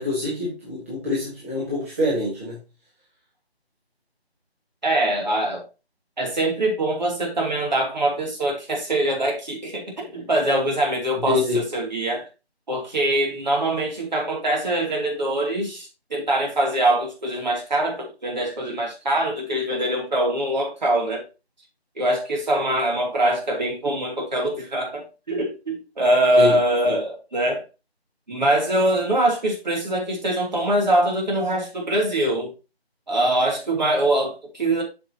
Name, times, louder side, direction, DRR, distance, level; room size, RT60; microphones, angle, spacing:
voice 1, 0.0-2.6 11.3-11.6 26.4-26.6 26.8-27.0, left 2 dB, 15° right, 1.4 m, -25 dB
voice 2, 4.8-5.6 6.2-12.3 12.7-21.2 22.0-27.6 28.3-32.5 33.1-34.8, right 1 dB, 45° right, 3.1 m, -23 dB
8.1 x 6.7 x 2.9 m
figure-of-eight pair, 165°, 32 cm